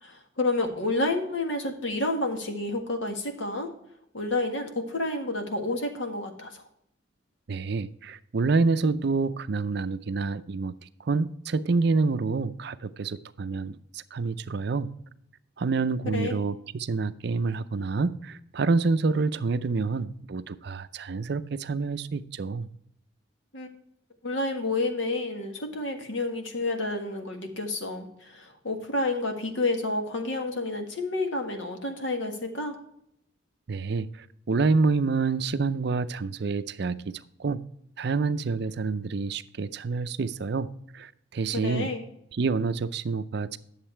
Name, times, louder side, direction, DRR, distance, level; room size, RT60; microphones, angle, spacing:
voice 1, 0.0-3.7 4.1-6.6 16.1-16.4 23.5-23.7 24.2-32.8 41.5-42.0, left 2 dB, 75° left, 5 dB, 1.7 m, -30 dB
voice 2, 7.5-14.9 15.6-22.7 33.7-37.6 38.0-41.9 42.3-43.6, right 4 dB, 60° right, 13 dB, 0.5 m, -28 dB
10.5 x 7.3 x 4.4 m, 0.74 s
head